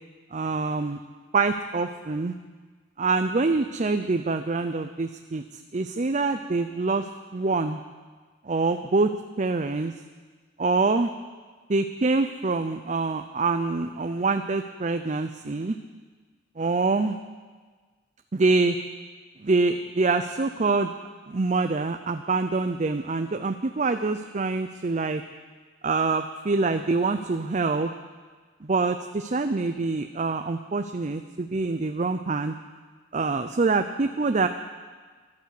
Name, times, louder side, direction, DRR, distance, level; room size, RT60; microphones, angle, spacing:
voice 1, 0.3-1.0 1.3-2.4 3.0-5.4 5.7-7.0 7.3-7.8 8.5-9.1 9.4-9.9 10.6-11.1 11.7-15.8 16.6-17.2 18.3-18.8 19.4-20.9 21.3-25.2 25.8-27.9 28.6-32.5 33.1-34.5, right 3 dB, 40° right, 8 dB, 0.5 m, -25 dB
14.5 x 12.0 x 8.3 m, 1.4 s
head